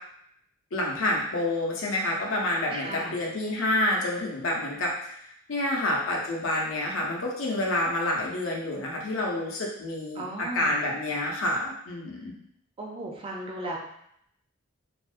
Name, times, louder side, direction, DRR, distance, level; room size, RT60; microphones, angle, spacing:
voice 1, 0.7-10.2 10.5-12.3, left 1 dB, 90° left, -2 dB, 0.6 m, -28 dB
voice 2, 2.7-3.1 10.1-10.8 12.8-13.8, right 2 dB, 25° right, -1 dB, 0.3 m, -36 dB
2.5 x 2.0 x 2.4 m, 0.72 s
head